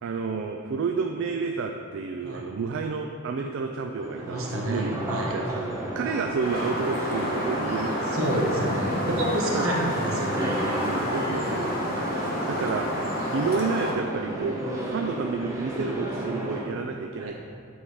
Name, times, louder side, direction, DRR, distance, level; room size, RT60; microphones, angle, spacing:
voice 1, 0.0-5.5 6.0-8.2 9.5-9.7 10.8-11.7 12.1-12.9 13.3-17.4, right 4 dB, 65° right, 3 dB, 0.4 m, -30 dB
sound 1, 4.0-16.6, right 1 dB, 15° right, 1.0 m, -33 dB
voice 2, 4.2-5.3 8.1-10.6 17.2-17.3, right 1 dB, 80° right, -2 dB, 1.2 m, -29 dB
sound 2, 6.4-13.9, equal, 45° left, 1.2 m, -30 dB
8.6 x 3.6 x 4.8 m, 2.5 s
head